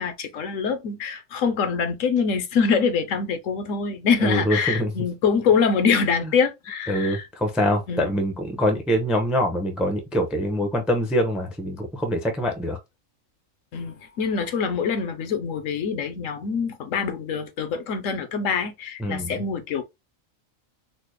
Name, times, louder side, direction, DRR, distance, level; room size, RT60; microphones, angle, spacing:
voice 1, 0.0-7.3 7.9-8.1 13.7-19.8, left 5 dB, 75° left, 1.0 m, -24 dB
voice 2, 4.2-4.9 6.9-12.8 19.0-19.4, equal, ahead, 0.3 m, -24 dB
4.1 x 2.1 x 3.1 m
omnidirectional pair, 1.4 m